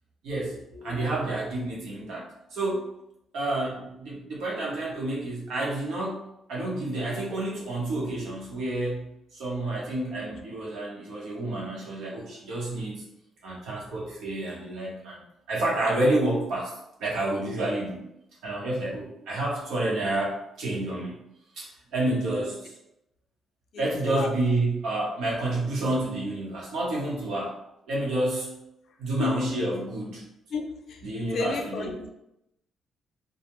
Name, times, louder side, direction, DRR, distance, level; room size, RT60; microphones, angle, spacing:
voice 1, 0.2-2.9 3.3-13.0 13.4-16.7 17.0-18.0 18.4-21.2 21.6-22.8 23.8-27.6 27.9-28.5 29.0-30.2 31.0-32.0, right 2 dB, 80° right, -4 dB, 0.9 m, -29 dB
voice 2, 0.8-1.1 22.4-22.5 23.7-24.3 29.2-29.3 30.5-31.0 31.3-32.1, left 4 dB, 65° left, 4 dB, 0.4 m, -33 dB
2.3 x 2.1 x 2.9 m, 0.83 s
cardioid pair, 90°, 0 cm